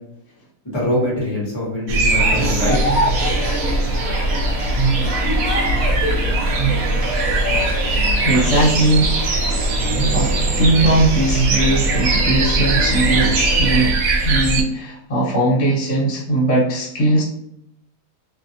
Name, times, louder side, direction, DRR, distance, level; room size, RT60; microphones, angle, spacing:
voice 1, 0.6-2.8, left 1 dB, 20° left, -6 dB, 1.3 m, -23 dB
sound 1, 1.9-14.6, right 2 dB, 75° right, 1.0 m, -20 dB
sound 2, 2.1-13.9, right 1 dB, 50° right, 0.3 m, -25 dB
voice 2, 8.2-9.2 10.1-13.9 14.2-17.2, right 2 dB, 50° left, -5 dB, 1.3 m, -19 dB
3.0 x 2.6 x 2.7 m, 0.76 s
omnidirectional pair, 1.6 m